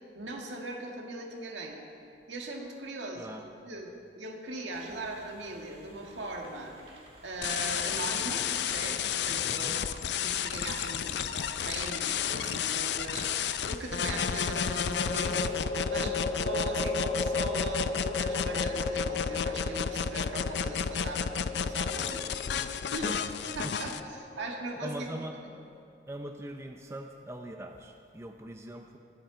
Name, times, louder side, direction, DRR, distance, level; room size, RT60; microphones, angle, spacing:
voice 1, 0.2-1.8 2.3-3.3 3.6-3.9 4.2-6.7 7.2-9.9 10.2-13.3 13.7-15.4 15.8-23.1 23.5-25.2, right 2 dB, 75° right, 0 dB, 1.9 m, -40 dB
sound 1, 4.7-15.6, right 1 dB, 30° right, 1.7 m, -55 dB
sound 2, 7.4-24.0, left 7 dB, 60° left, 0.4 m, -31 dB
voice 2, 9.4-9.8 15.9-16.1 23.0-23.2 23.6-23.7 24.8-25.4 26.1-29.0, right 1 dB, 15° right, 4 dB, 0.5 m, -41 dB
sound 3, 11.4-12.2 14.5-25.8, left 2 dB, 30° left, 0.7 m, -37 dB
21.5 x 8.9 x 4.0 m, 2.5 s
head